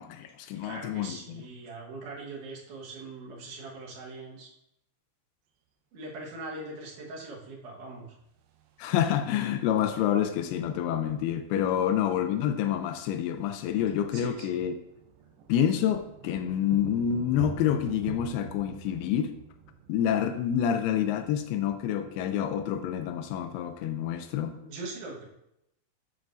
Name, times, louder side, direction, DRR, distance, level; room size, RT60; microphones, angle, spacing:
voice 1, 0.0-1.5 8.8-14.8 15.5-19.4 19.9-24.6, left 9 dB, 85° left, 9 dB, 2.5 m, -28 dB
voice 2, 0.6-4.5 5.9-8.1 14.1-14.6 24.6-25.3, right 2 dB, 60° right, -3 dB, 2.5 m, -41 dB
sound 1, 8.5-10.0 11.3-11.4 11.6-11.9 12.1-24.2, right 7 dB, 80° right, 2.6 m, -46 dB
12.5 x 4.5 x 2.6 m, 0.81 s
omnidirectional pair, 4.6 m